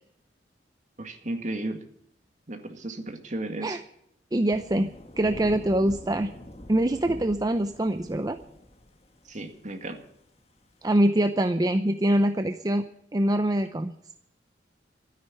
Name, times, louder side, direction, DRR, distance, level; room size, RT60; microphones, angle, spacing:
voice 1, 1.0-1.8 2.5-3.8 9.3-10.0, right 2 dB, 45° right, 6 dB, 2.0 m, -34 dB
voice 2, 4.3-4.9 5.2-6.3 6.7-8.4 10.8-12.9 13.1-13.9, right 1 dB, 20° right, 9 dB, 0.6 m, -24 dB
Thunder / Rain, 4.5-10.8, left 1 dB, 35° left, 1.4 m, -44 dB
13.0 x 10.0 x 9.7 m, 0.74 s
head